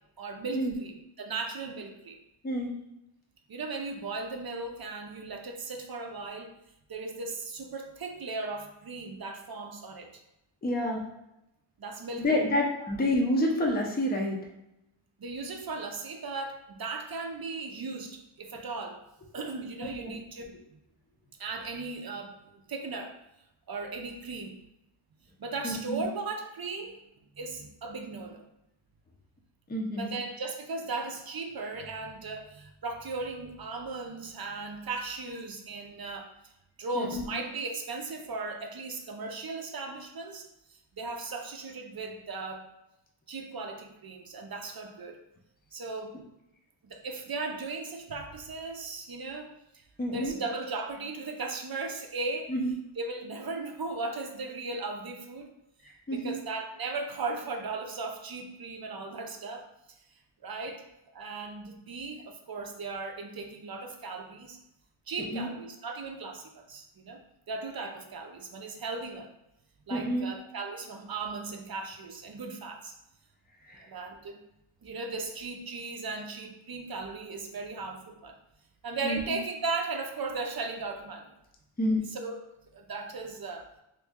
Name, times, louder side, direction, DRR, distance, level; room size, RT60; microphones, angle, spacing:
voice 1, 0.2-2.2 3.5-6.6 6.9-10.2 11.8-12.4 15.2-19.0 19.3-20.8 21.4-23.2 23.7-24.6 25.4-27.0 27.3-28.4 30.0-36.5 36.8-42.7 43.3-45.2 45.7-46.2 46.8-49.5 50.1-52.5 53.0-55.5 56.1-60.0 60.4-60.8 61.1-64.6 65.1-69.3 69.9-72.9 73.8-74.4 74.8-78.4 78.8-81.3 82.1-82.4 82.7-83.7, right 3 dB, 50° right, 3 dB, 0.6 m, -37 dB
voice 2, 10.6-11.0 12.2-14.4 20.0-20.1 25.6-26.0 29.7-30.1 37.0-37.3 50.0-50.3 52.5-52.7 55.8-56.3 65.3-65.5 69.9-70.3 73.6-73.9 79.0-79.3 81.8-82.1, left 1 dB, 20° left, 0 dB, 0.5 m, -28 dB
2.9 x 2.6 x 3.5 m, 0.86 s
wide cardioid pair, 85°, 50 cm